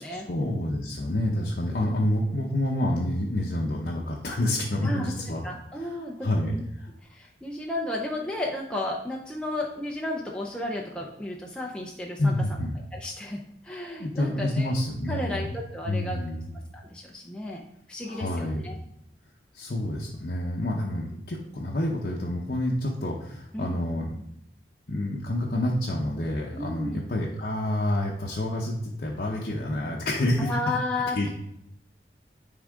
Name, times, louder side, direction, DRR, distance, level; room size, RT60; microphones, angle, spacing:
voice 1, 0.3-5.4 6.2-6.5 12.2-12.8 14.0-15.5 15.9-16.4 18.1-18.8 19.5-24.2 24.9-30.5 31.2-31.3, left 1 dB, 50° left, -2 dB, 0.7 m, -28 dB
voice 2, 4.8-5.1 5.4-6.3 6.5-6.6 7.0-12.3 12.9-14.7 15.0-16.2 16.5-18.8 23.5-23.8 26.5-27.0 30.4-31.3, left 1 dB, 5° left, -2 dB, 0.5 m, -33 dB
9.9 x 3.7 x 3.6 m, 0.77 s
head